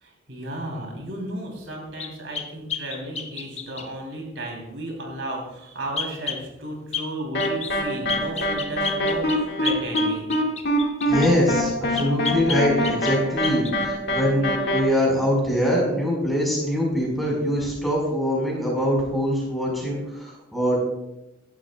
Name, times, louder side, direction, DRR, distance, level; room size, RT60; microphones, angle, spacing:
voice 1, 0.0-10.3, right 1 dB, 75° right, 0 dB, 3.2 m, -34 dB
sound 1, 2.0-3.9 6.0-6.4 6.9-7.1 7.4-7.8 8.1-11.3 11.9-13.2 13.4-13.8, left 5 dB, 35° left, 1.0 m, -31 dB
sound 2, 7.3-14.8, equal, 55° left, 1.9 m, -24 dB
voice 2, 11.1-20.8, equal, ahead, -3 dB, 4.7 m, -23 dB
16.5 x 12.0 x 2.3 m, 0.91 s
head